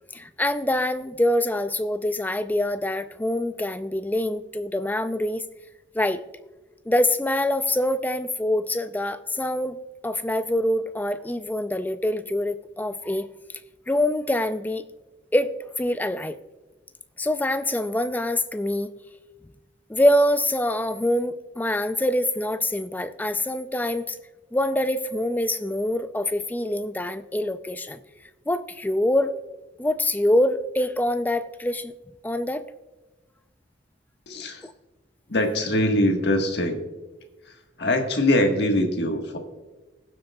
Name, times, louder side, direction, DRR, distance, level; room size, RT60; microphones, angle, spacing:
voice 1, 0.1-5.4 5.9-6.2 6.9-9.8 10.0-13.3 13.9-14.8 15.3-16.4 17.2-18.9 19.9-24.2 24.5-28.0 28.5-29.3 29.8-31.9 32.2-32.7 34.6-34.7, left 1 dB, 10° left, 11 dB, 0.4 m, -25 dB
voice 2, 34.3-34.7 35.3-36.8 37.4-39.4, left 1 dB, 60° left, 4 dB, 1.5 m, -23 dB
20.0 x 7.8 x 2.3 m, 1.2 s
head